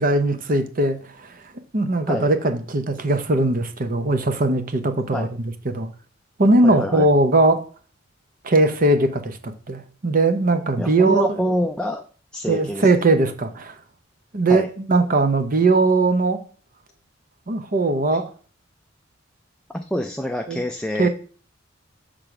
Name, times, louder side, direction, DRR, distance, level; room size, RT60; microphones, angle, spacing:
voice 1, 0.0-5.3 5.6-5.9 6.4-7.6 8.4-11.4 12.5-13.8 14.3-16.4 17.5-18.3 20.5-20.6 21.0-21.1, right 2 dB, 45° right, 9 dB, 0.8 m, -20 dB
voice 2, 6.6-7.1 10.8-12.1 12.3-12.9 14.5-14.7 18.1-18.2 19.7-21.1, equal, 5° left, 4 dB, 0.4 m, -26 dB
6.6 x 3.8 x 5.9 m, 0.42 s
head